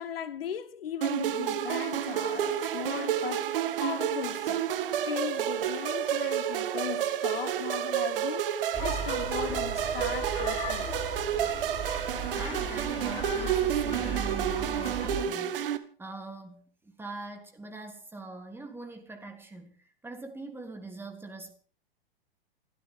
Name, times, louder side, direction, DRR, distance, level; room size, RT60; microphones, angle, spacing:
voice 1, 0.0-3.5 3.8-4.6 5.0-8.5 8.8-11.0, left 9 dB, 70° left, 1.4 m, -37 dB
sound 1, 1.0-15.8, right 10 dB, 65° right, 1.9 m, -30 dB
sound 2, 8.7-15.2, right 2 dB, 20° left, 5.0 m, -36 dB
voice 2, 12.3-21.5, right 2 dB, 5° right, 3.2 m, -43 dB
29.0 x 12.5 x 3.6 m
hypercardioid pair, 115°, 30 cm